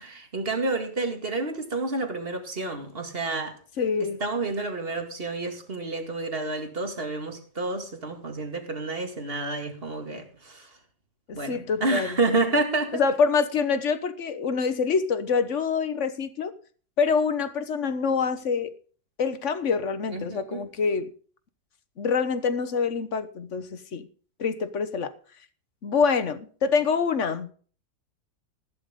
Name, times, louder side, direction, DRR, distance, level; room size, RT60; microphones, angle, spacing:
voice 1, 0.0-3.5 4.2-10.7 11.3-13.0 20.1-20.7, right 3 dB, 35° right, 2.4 m, -29 dB
voice 2, 3.8-4.2 11.3-12.2 12.9-16.5 17.0-18.7 19.2-21.1 22.0-24.1 24.4-25.1 25.8-27.5, left 5 dB, 50° left, 1.3 m, -26 dB
15.0 x 11.5 x 3.7 m
omnidirectional pair, 1.8 m